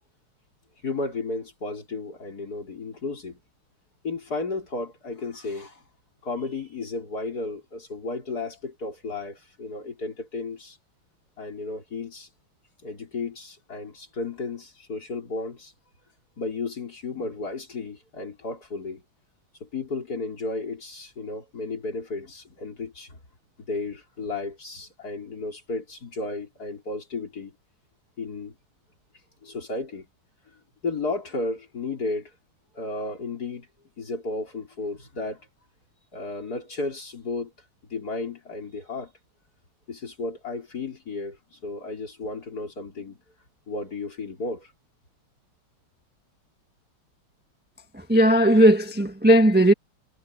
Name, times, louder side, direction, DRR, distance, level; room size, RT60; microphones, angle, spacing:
voice 1, 0.8-3.4 4.0-5.8 6.2-10.8 11.4-12.3 12.8-15.7 16.4-19.0 19.6-23.2 23.7-27.5 28.2-28.5 29.4-30.1 30.8-32.3 32.7-33.7 34.0-35.5 36.1-37.5 37.9-39.1 39.9-43.2 43.7-44.7, left 3 dB, 45° left, 4.7 m, -33 dB
voice 2, 48.1-49.7, right 1 dB, 5° right, 1.2 m, -17 dB
omnidirectional pair, 2.2 m